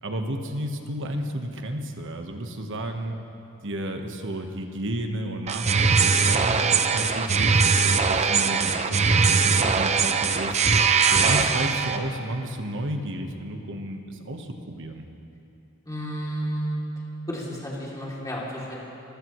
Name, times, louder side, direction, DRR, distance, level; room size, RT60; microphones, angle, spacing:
voice 1, 0.0-3.2 3.6-7.7 8.1-10.6 11.1-15.1, right 1 dB, 60° right, 4 dB, 1.3 m, -32 dB
sound 1, 5.5-12.0, right 5 dB, 30° right, 0.7 m, -21 dB
voice 2, 15.9-16.8 17.3-18.7, equal, 15° left, -5 dB, 2.8 m, -31 dB
29.5 x 15.0 x 3.2 m, 2.8 s
head